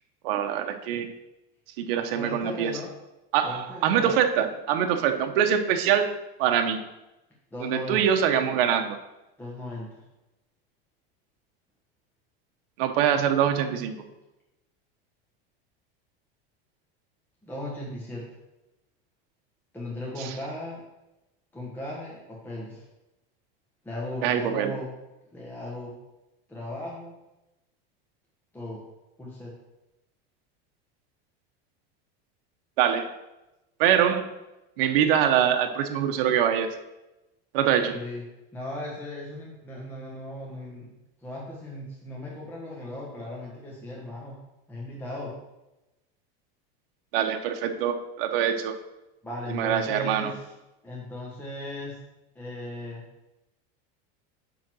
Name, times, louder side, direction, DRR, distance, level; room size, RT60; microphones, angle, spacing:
voice 1, 0.2-1.1 1.8-2.7 3.3-6.1 6.4-6.8 7.6-9.0 12.8-14.0 20.2-20.3 24.2-24.7 32.8-33.1 33.8-34.3 34.8-36.7 37.5-38.0 47.1-48.7 49.5-50.3, right 9 dB, 70° right, 5 dB, 1.1 m, -24 dB
voice 2, 2.1-2.9 3.4-4.2 7.5-8.0 9.4-10.0 17.4-18.3 19.7-20.8 21.5-22.8 23.8-24.9 25.3-25.9 26.5-27.2 28.5-28.8 29.2-29.5 37.9-38.2 38.5-40.9 41.2-44.4 44.7-45.4 49.2-50.5 50.8-52.0 52.3-53.0, left 1 dB, 5° left, -5 dB, 1.3 m, -37 dB
9.0 x 3.9 x 6.1 m, 0.97 s
supercardioid pair, 155°, 30 cm